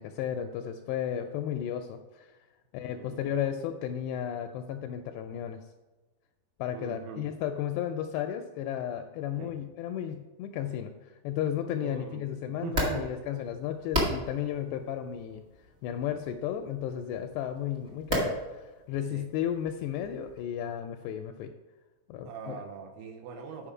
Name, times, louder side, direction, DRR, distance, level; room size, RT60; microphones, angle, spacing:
voice 1, 0.0-2.3 2.7-5.6 6.6-15.4 15.8-21.5 22.1-22.6, left 10 dB, 85° left, 6 dB, 2.4 m, -34 dB
voice 2, 2.9-3.2 6.7-7.2 9.4-9.5 11.8-13.1 19.1-19.3 22.2-23.7, right 6 dB, 75° right, 4 dB, 2.5 m, -41 dB
sound 1, 12.6-20.4, equal, 50° right, 0.7 m, -36 dB
10.0 x 5.5 x 4.8 m, 1.2 s
omnidirectional pair, 5.2 m